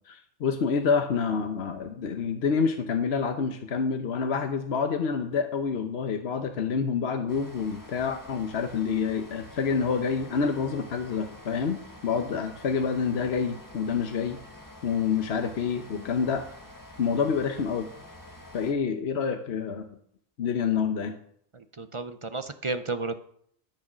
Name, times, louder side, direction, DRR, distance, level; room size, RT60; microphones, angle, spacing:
voice 1, 0.1-14.4 14.8-16.4 17.0-17.9 18.5-19.9 20.4-21.2, left 6 dB, 65° left, 6 dB, 1.1 m, -27 dB
sound 1, 7.3-18.7, left 1 dB, 15° left, 1.5 m, -48 dB
voice 2, 21.8-23.1, right 3 dB, 35° right, 9 dB, 0.5 m, -32 dB
13.0 x 6.4 x 6.1 m, 0.66 s
omnidirectional pair, 1.2 m